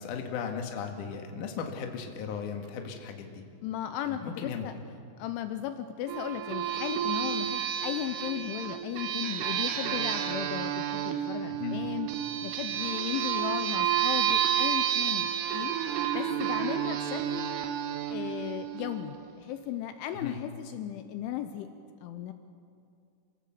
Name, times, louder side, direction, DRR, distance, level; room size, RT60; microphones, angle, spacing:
voice 1, 0.0-3.4 4.0-4.7 11.6-11.8 20.1-20.4, left 6 dB, 55° left, 3 dB, 2.5 m, -36 dB
voice 2, 3.6-4.7 5.2-12.1 12.4-15.8 16.1-17.5 18.1-21.7 22.0-22.3, left 11 dB, 80° left, 9 dB, 3.1 m, -36 dB
sound 1, 6.1-19.3, right 10 dB, 80° right, 3.7 m, -30 dB
27.5 x 17.0 x 7.7 m, 2.4 s
omnidirectional pair, 5.8 m